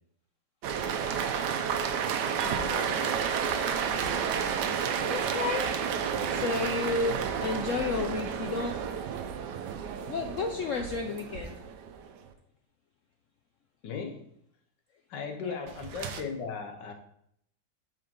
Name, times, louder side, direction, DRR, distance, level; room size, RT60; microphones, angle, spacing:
sound 1, 0.6-12.2 15.7-16.2, right 7 dB, 70° right, 1.2 m, -31 dB
voice 1, 2.4-3.3 5.0-5.8 6.2-8.8 10.1-11.6 15.4-15.7, left 4 dB, 90° left, 4 dB, 0.6 m, -32 dB
voice 2, 13.8-14.2 15.1-16.9, left 5 dB, 70° left, 5 dB, 1.5 m, -37 dB
5.6 x 5.4 x 5.3 m, 0.74 s
omnidirectional pair, 2.0 m